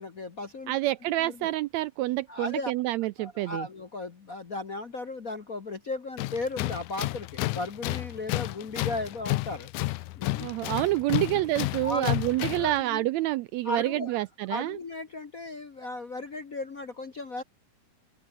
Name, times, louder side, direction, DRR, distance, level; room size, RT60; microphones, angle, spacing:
voice 1, 0.0-0.7 1.2-1.5 2.3-2.7 3.2-10.5 11.1-11.3 11.8-13.1 13.6-14.2 14.5-17.4, left 2 dB, 45° left, 1.2 m, -36 dB
voice 2, 0.7-3.7 10.4-14.8, right 16 dB, 80° right, 1.6 m, -28 dB
Tools, 6.2-12.8, left 18 dB, 85° left, 2.1 m, -31 dB
open air
omnidirectional pair, 3.5 m